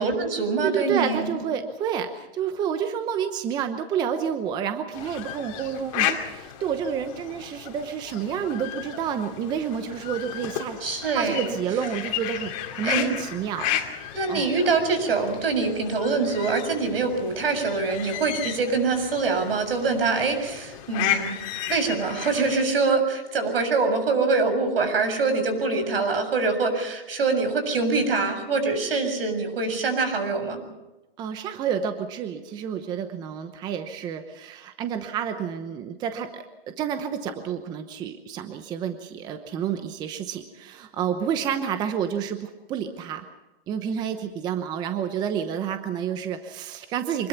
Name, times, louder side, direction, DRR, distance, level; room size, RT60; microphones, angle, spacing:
voice 1, 0.0-1.4 10.8-11.5 12.8-13.1 14.1-21.4 21.7-30.6, right 4 dB, 70° right, 7 dB, 7.0 m, -24 dB
voice 2, 0.6-10.8 11.1-13.7 14.3-14.5 31.2-36.4 36.8-43.2 43.7-47.3, right 8 dB, 15° right, 9 dB, 0.9 m, -29 dB
sound 1, 4.9-22.6, left 11 dB, 35° left, 2.6 m, -33 dB
25.5 x 20.5 x 5.9 m, 1.0 s
hypercardioid pair, 155°, 30 cm